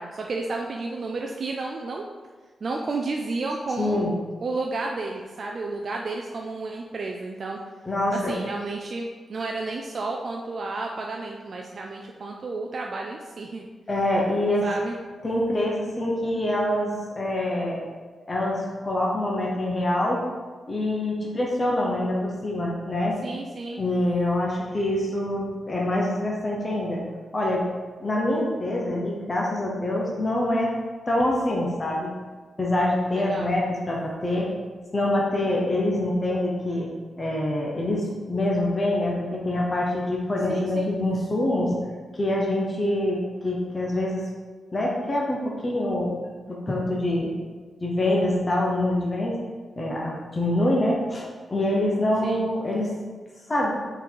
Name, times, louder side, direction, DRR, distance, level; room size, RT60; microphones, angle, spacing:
voice 1, 0.0-2.1 2.6-4.1 4.4-7.6 8.1-13.7 14.6-14.9 23.2-23.8 33.1-33.5 40.5-40.9 52.2-52.5, right 3 dB, 40° right, 0 dB, 0.4 m, -31 dB
voice 2, 3.8-4.1 7.9-8.4 13.9-14.7 15.2-17.9 18.3-20.2 20.7-23.2 23.8-27.0 27.3-27.6 28.0-30.7 31.1-32.1 32.6-34.5 34.9-36.9 37.2-41.8 42.1-44.3 44.7-47.3 47.8-49.4 49.8-52.9 53.5-53.7, left 1 dB, 20° left, -3 dB, 0.8 m, -25 dB
5.9 x 3.9 x 4.6 m, 1.4 s
wide cardioid pair, 170°, 0 cm